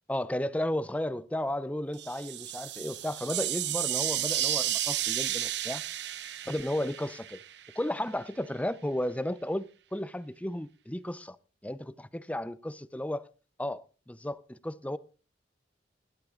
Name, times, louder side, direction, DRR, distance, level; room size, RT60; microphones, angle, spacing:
voice 1, 0.1-5.8 6.5-7.4 7.8-11.4 11.6-13.2 13.6-15.0, left 1 dB, 10° left, 0.6 m, -33 dB
sound 1, 1.9-7.8, right 13 dB, 65° right, 0.8 m, -32 dB
20.5 x 12.0 x 2.5 m
head